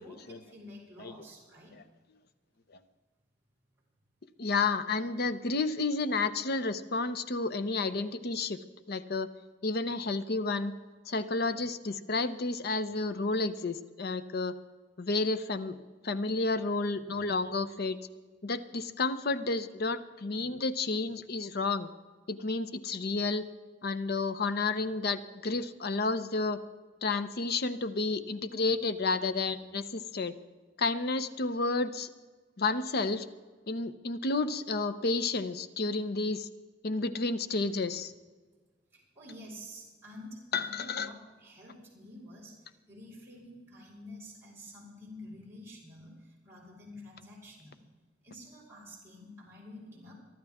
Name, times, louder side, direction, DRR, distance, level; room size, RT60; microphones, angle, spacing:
voice 1, 0.0-1.7 38.9-47.8 48.2-50.1, left 1 dB, 15° right, -7 dB, 4.9 m, -49 dB
voice 2, 4.4-9.3 9.6-10.7 11.1-14.5 15.0-15.8 16.0-18.0 18.4-21.9 22.3-23.5 23.8-26.6 27.0-30.3 30.8-32.1 32.6-33.3 33.7-36.5 36.8-38.1 40.5-41.1, left 3 dB, 60° left, 12 dB, 0.7 m, -31 dB
23.5 x 12.0 x 3.6 m, 1.4 s
head